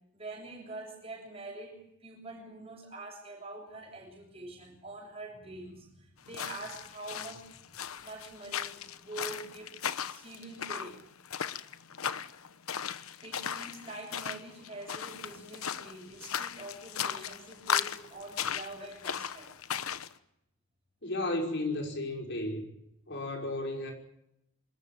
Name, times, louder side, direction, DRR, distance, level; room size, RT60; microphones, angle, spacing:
voice 1, 0.1-7.7 8.0-9.8 10.1-11.0 13.2-19.5, right 2 dB, 25° right, 2 dB, 7.7 m, -45 dB
sound 1, 6.3-20.1, left 8 dB, 80° left, 1.0 m, -37 dB
voice 2, 21.0-22.7 23.1-23.9, left 2 dB, 50° left, 2 dB, 5.4 m, -33 dB
26.0 x 14.5 x 9.2 m, 0.78 s
head